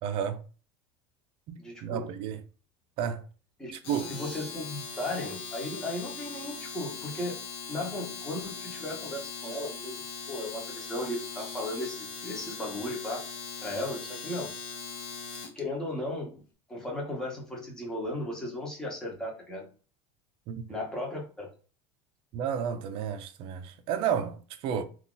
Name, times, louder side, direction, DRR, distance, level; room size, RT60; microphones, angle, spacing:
voice 1, 0.0-0.4 1.5-2.4 3.0-3.2 3.9-4.1 20.5-20.7 22.3-24.8, right 8 dB, 45° right, 0.4 m, -31 dB
voice 2, 1.6-2.1 3.6-3.7 4.1-7.4 7.7-10.0 10.3-13.2 13.6-14.5 15.5-16.4 16.7-19.7 20.7-21.5, left 1 dB, 5° left, 0.9 m, -36 dB
Domestic sounds home sounds, 3.7-15.6, left 5 dB, 45° left, 0.7 m, -40 dB
2.7 x 2.4 x 3.7 m
cardioid pair, 155°, 12 cm